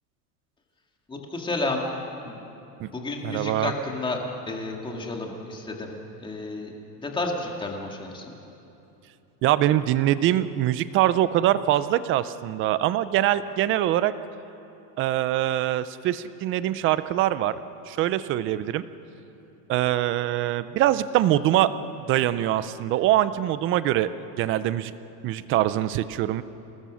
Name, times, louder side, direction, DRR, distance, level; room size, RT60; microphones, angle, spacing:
voice 1, 1.1-1.9 2.2-2.4 2.9-6.7 7.0-8.3, left 2 dB, 10° left, 1 dB, 2.1 m, -31 dB
voice 2, 3.2-3.7 9.4-14.1 15.0-17.6 17.9-18.8 19.7-21.7 22.1-24.1 24.4-24.9 25.2-26.4, right 13 dB, 30° right, 15 dB, 0.4 m, -23 dB
28.0 x 19.5 x 6.3 m, 2.9 s
supercardioid pair, 150°, 47 cm